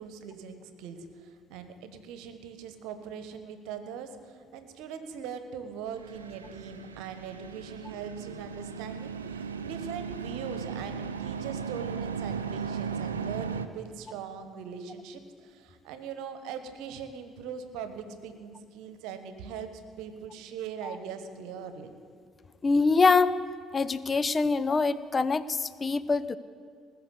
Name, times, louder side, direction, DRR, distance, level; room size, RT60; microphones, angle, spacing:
voice 1, 0.0-21.9, right 7 dB, 65° right, 9 dB, 1.2 m, -41 dB
sound 1, 5.8-13.7, right 6 dB, 85° right, 0.5 m, -36 dB
voice 2, 22.6-23.4 23.7-26.4, left 4 dB, 30° left, 15 dB, 0.5 m, -24 dB
19.5 x 6.7 x 8.2 m, 2.2 s
figure-of-eight pair, 50°, 0 cm